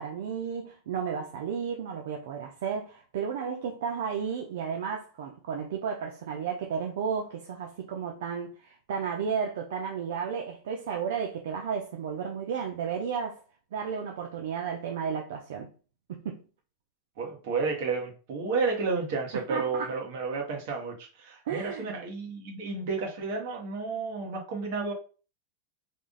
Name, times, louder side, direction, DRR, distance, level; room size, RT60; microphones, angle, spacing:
voice 1, 0.0-13.4 13.7-15.7 16.1-16.4 19.5-19.9 21.5-21.9, right 6 dB, 75° right, 0.7 m, -33 dB
voice 2, 17.2-24.9, right 4 dB, 60° right, 1.6 m, -31 dB
3.6 x 2.5 x 3.7 m
supercardioid pair, 145°, 0 cm